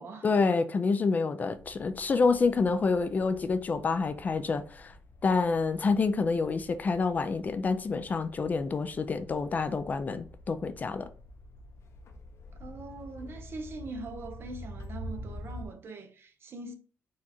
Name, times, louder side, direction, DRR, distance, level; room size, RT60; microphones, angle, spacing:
voice 1, 0.2-4.9 5.2-11.1, left 4 dB, 30° left, 0.4 m, -28 dB
sound 1, 1.5-15.7, left 1 dB, 60° left, 0.7 m, -47 dB
voice 2, 12.6-16.7, right 2 dB, 45° right, 0.8 m, -42 dB
4.5 x 2.5 x 4.2 m
cardioid pair, 130°, 5 cm